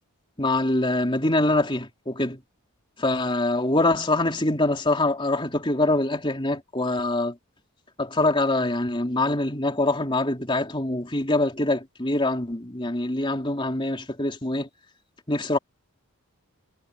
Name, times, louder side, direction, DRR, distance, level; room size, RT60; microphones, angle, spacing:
voice 1, 0.4-2.4 3.0-7.4 8.0-14.7 15.3-15.6, left 2 dB, 20° left, 3.6 m, -24 dB
head